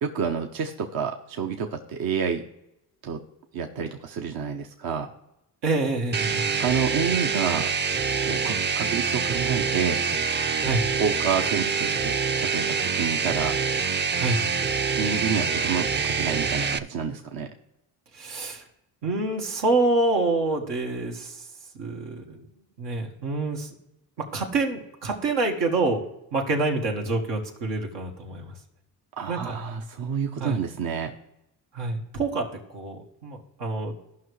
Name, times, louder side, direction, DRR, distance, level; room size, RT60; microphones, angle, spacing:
voice 1, 0.0-2.4 3.0-3.2 3.5-5.1 6.6-7.7 8.3-10.0 11.0-13.6 15.0-17.5 29.2-31.1, right 6 dB, 60° right, 4 dB, 0.9 m, -29 dB
voice 2, 5.6-6.5 10.6-10.8 14.2-14.4 18.1-18.6 19.0-21.5 21.7-22.5 22.8-23.7 24.2-26.1 26.3-28.5 29.3-29.6 30.4-30.6 31.7-33.9, right 2 dB, 85° right, 1 dB, 1.8 m, -27 dB
sound 1, 6.1-16.8, right 5 dB, 25° right, 0.5 m, -26 dB
15.0 x 5.7 x 3.2 m, 0.88 s
cardioid pair, 75°, 40 cm